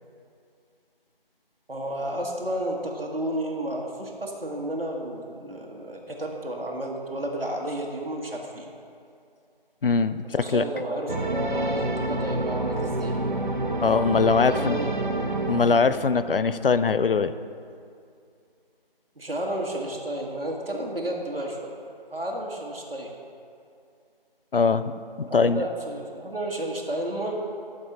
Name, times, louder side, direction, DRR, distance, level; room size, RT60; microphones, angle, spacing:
voice 1, 1.7-8.7 10.3-13.2 14.3-15.2 19.2-21.8 22.1-23.1 25.3-27.3, right 1 dB, 75° right, -1 dB, 1.3 m, -32 dB
voice 2, 9.8-10.6 13.8-14.8 15.5-17.3 24.5-25.6, left 5 dB, 65° left, 13 dB, 0.4 m, -22 dB
sound 1, 11.1-16.6, right 2 dB, 55° right, 0.6 m, -28 dB
13.5 x 5.4 x 4.0 m, 2.4 s
figure-of-eight pair, 175°, 30 cm